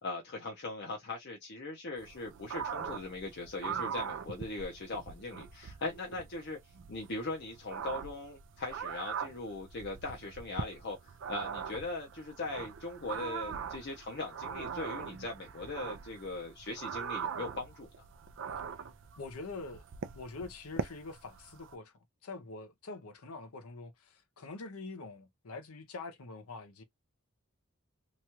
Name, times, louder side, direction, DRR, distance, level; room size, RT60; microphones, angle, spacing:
voice 1, 0.0-18.0, left 2 dB, 50° left, 0.7 m, -40 dB
sound 1, 2.0-21.8, right 6 dB, 60° right, 0.4 m, -42 dB
voice 2, 19.2-19.8 20.1-21.9 22.2-26.8, left 3 dB, 90° left, 0.7 m, -45 dB
3.0 x 2.3 x 2.9 m
head